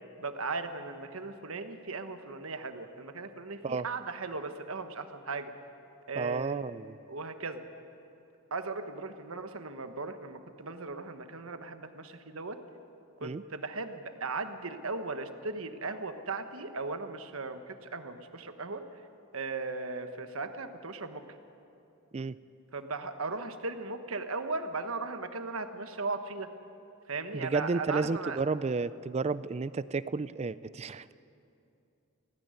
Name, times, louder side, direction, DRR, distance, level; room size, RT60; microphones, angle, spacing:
voice 1, 0.2-5.5 6.1-6.6 7.1-7.6 8.5-12.6 13.2-18.8 19.3-21.2 22.7-26.5 27.1-28.4, right 3 dB, 70° right, 8 dB, 1.2 m, -37 dB
voice 2, 6.2-7.0 13.2-13.4 22.1-22.4 27.3-31.1, right 4 dB, 30° right, 17 dB, 0.4 m, -32 dB
17.0 x 16.5 x 9.6 m, 2.7 s
head